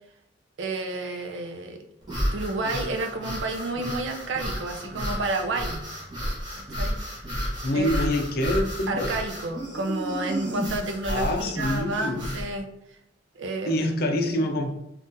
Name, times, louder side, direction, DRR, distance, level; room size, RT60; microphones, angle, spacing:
voice 1, 0.6-1.8 2.3-5.8 6.7-7.0 7.7-7.9 8.9-12.6 13.3-13.8, right 2 dB, 80° right, 4 dB, 0.5 m, -30 dB
sound 1, 2.0-12.5, equal, 25° right, 1.0 m, -32 dB
voice 2, 7.6-9.1 11.1-12.4 13.7-14.7, left 1 dB, 55° left, 4 dB, 0.4 m, -26 dB
3.8 x 2.3 x 2.6 m, 0.83 s
head